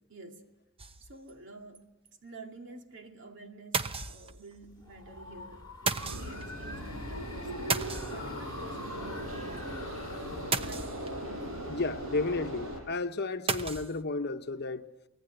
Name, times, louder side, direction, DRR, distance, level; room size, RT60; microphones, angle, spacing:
voice 1, 0.1-0.5 1.0-1.9 2.2-7.8 8.1-9.8 10.6-11.0, right 3 dB, 60° right, 2.6 m, -49 dB
sound 1, 0.8-1.3 1.7-1.8 2.1-2.2 3.7-4.6 5.9-6.5 7.7-8.6 10.5-11.3 13.5-14.0, right 4 dB, 30° right, 0.9 m, -33 dB
sound 2, 4.6-11.8, left 2 dB, 20° left, 2.3 m, -47 dB
sound 3, 6.0-12.8, equal, 75° right, 7.0 m, -39 dB
voice 2, 11.7-14.9, left 3 dB, 55° left, 1.1 m, -32 dB
25.5 x 19.5 x 9.3 m
head